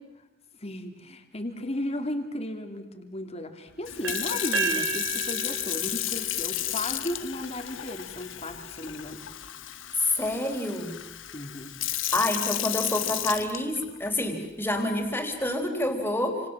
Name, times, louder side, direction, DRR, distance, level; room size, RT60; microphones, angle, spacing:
voice 1, 0.6-9.2 11.3-11.7, left 1 dB, 30° left, 5 dB, 2.7 m, -35 dB
Sink (filling or washing) / Fill (with liquid), 3.8-14.1 14.7-15.0, left 14 dB, 75° left, 1.3 m, -33 dB
sound 1, 4.0-7.9, right 6 dB, 85° right, 5.7 m, -34 dB
voice 2, 10.0-10.9 12.1-16.4, left 1 dB, 10° left, 4 dB, 3.8 m, -28 dB
29.5 x 26.5 x 7.4 m, 1.0 s
head